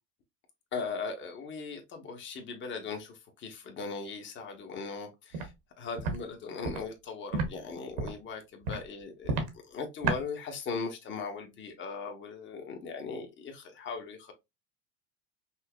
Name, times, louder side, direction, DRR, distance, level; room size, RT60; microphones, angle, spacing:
voice 1, 0.7-5.5 5.8-9.4 9.7-14.3, left 4 dB, 35° left, 1.0 m, -39 dB
Walk footsteps, 5.3-5.5 6.0-6.2 6.6-6.8 7.3-7.5 7.9-8.2 8.6-8.8 9.2-9.5 10.0-10.2, right 4 dB, 80° right, 1.2 m, -30 dB
5.4 x 2.1 x 2.2 m
supercardioid pair, 130°, 35 cm